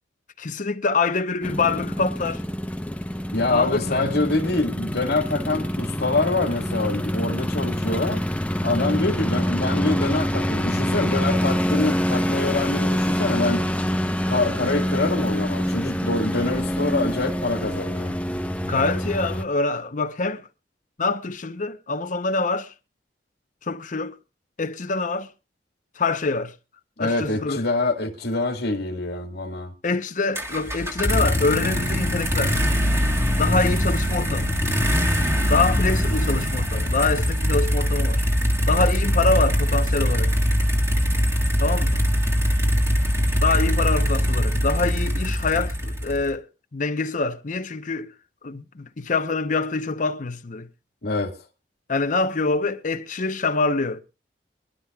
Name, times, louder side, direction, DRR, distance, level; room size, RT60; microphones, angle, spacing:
voice 1, 0.4-2.4 3.5-4.1 18.6-20.4 21.0-22.7 23.6-24.2 24.6-25.3 26.0-26.5 27.0-27.6 29.8-32.6 33.4-34.5 35.5-38.2 38.7-40.3 41.6-42.1 43.4-46.5 46.7-48.1 48.4-50.7 51.9-54.0, left 3 dB, 45° left, 0.8 m, -25 dB
sound 1, 1.4-19.4, equal, 10° left, 0.7 m, -26 dB
voice 2, 3.3-8.2 8.6-13.6 14.3-18.2 27.0-29.7 51.0-51.4, left 2 dB, 70° left, 1.8 m, -25 dB
sound 2, 30.3-46.3, equal, 15° right, 1.7 m, -22 dB
23.5 x 11.5 x 2.3 m
head